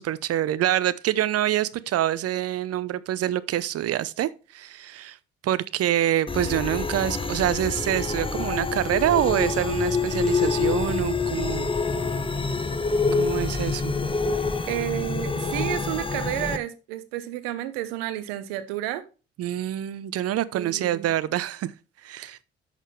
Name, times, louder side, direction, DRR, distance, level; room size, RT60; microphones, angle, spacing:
voice 1, 0.0-5.2 5.4-11.7 13.1-14.0 19.4-21.7 22.0-22.4, right 12 dB, 50° right, 0.7 m, -26 dB
sound 1, 6.3-16.6, left 4 dB, 15° left, 1.0 m, -26 dB
voice 2, 14.7-19.0 20.5-21.1, right 13 dB, 75° right, 1.0 m, -31 dB
11.0 x 6.7 x 3.2 m
figure-of-eight pair, 45°, 30 cm